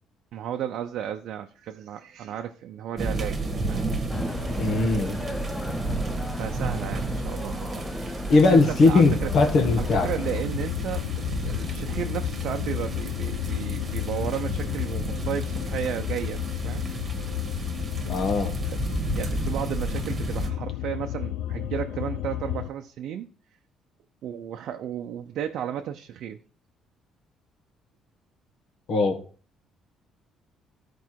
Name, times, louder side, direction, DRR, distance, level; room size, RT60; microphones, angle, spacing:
voice 1, 0.3-3.8 6.4-7.8 8.4-9.3 9.8-16.8 18.0-18.1 18.4-18.5 19.1-23.3 24.2-26.4, right 10 dB, 70° right, 0.6 m, -33 dB
sound 1, 3.0-20.5, right 2 dB, 30° right, 1.6 m, -32 dB
sound 2, 4.1-10.4, left 2 dB, 10° left, 0.7 m, -36 dB
voice 2, 4.6-5.2 8.3-10.1 18.1-18.5 28.9-29.2, left 3 dB, 50° left, 1.6 m, -20 dB
sound 3, 8.9-22.7, left 13 dB, 85° left, 0.4 m, -32 dB
13.0 x 4.6 x 4.6 m
cardioid pair, 130°, 0 cm